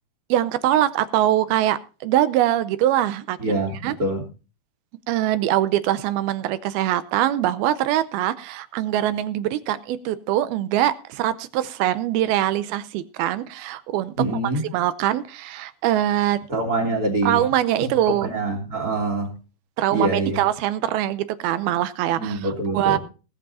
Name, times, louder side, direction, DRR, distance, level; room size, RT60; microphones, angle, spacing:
voice 1, 0.3-3.4 3.8-4.0 5.1-14.1 14.7-16.4 17.2-18.3 19.8-23.0, right 13 dB, 80° right, 14 dB, 2.6 m, -23 dB
voice 2, 3.4-4.2 14.2-14.6 16.5-17.4 17.8-19.3 19.9-20.4 22.2-23.0, right 2 dB, 25° right, 1 dB, 2.5 m, -25 dB
19.5 x 7.9 x 4.2 m, 0.34 s
omnidirectional pair, 4.4 m